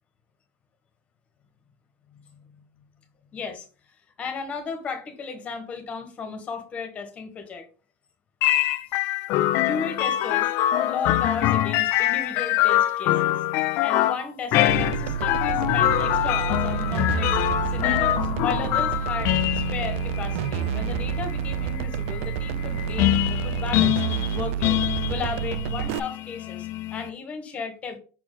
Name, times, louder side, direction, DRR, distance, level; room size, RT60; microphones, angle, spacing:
voice 1, 3.3-7.7 9.6-10.5 10.8-13.4 13.8-17.4 17.7-19.3 19.7-24.0 24.3-24.8 25.1-28.0, left 5 dB, 20° left, 6 dB, 1.1 m, -35 dB
sound 1, 8.4-27.1, left 14 dB, 40° left, 0.4 m, -24 dB
sound 2, 14.7-26.0, right 10 dB, 70° right, 0.4 m, -29 dB
5.9 x 4.4 x 3.8 m, 0.36 s
supercardioid pair, 175°, 7 cm